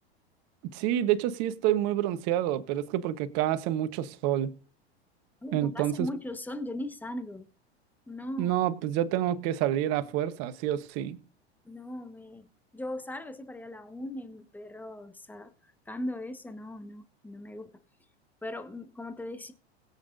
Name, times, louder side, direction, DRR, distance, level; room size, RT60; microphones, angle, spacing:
voice 1, 0.7-4.5 5.5-6.1 8.4-11.2, right 12 dB, 50° right, 1.2 m, -28 dB
voice 2, 5.4-7.5 8.1-8.5 11.6-12.5 12.7-17.8 18.4-19.5, left 1 dB, 5° left, 1.2 m, -39 dB
21.0 x 8.3 x 2.6 m
hypercardioid pair, 90°, 33 cm